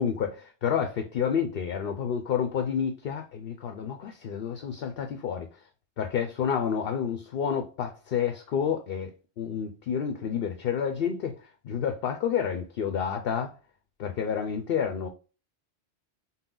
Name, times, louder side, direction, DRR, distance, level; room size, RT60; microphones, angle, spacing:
voice 1, 0.0-5.5 6.0-9.1 9.4-11.4 11.6-13.5 14.0-15.1, left 7 dB, 60° left, 0.7 m, -29 dB
5.7 x 2.1 x 3.8 m
omnidirectional pair, 1.2 m